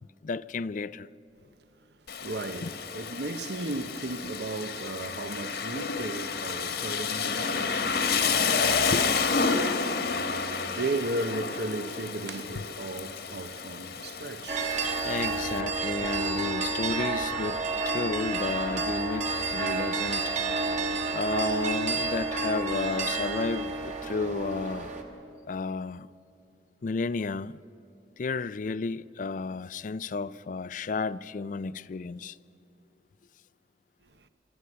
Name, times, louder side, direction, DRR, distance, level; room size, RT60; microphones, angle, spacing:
voice 1, 0.2-1.1 2.6-2.7 8.9-9.0 12.6-12.7 15.0-17.6 17.9-20.3 21.1-23.7 24.0-24.9 25.5-26.1 26.8-27.5 28.2-32.3, left 4 dB, 45° left, 0.4 m, -32 dB
Rain, 2.1-15.6, left 5 dB, 65° left, 1.5 m, -30 dB
voice 2, 2.2-9.1 9.4-9.7 10.0-14.8 16.0-16.1, right 2 dB, 70° right, 0.9 m, -35 dB
sound 1, 14.5-25.0, right 3 dB, 45° right, 1.9 m, -30 dB
24.5 x 13.5 x 9.7 m
head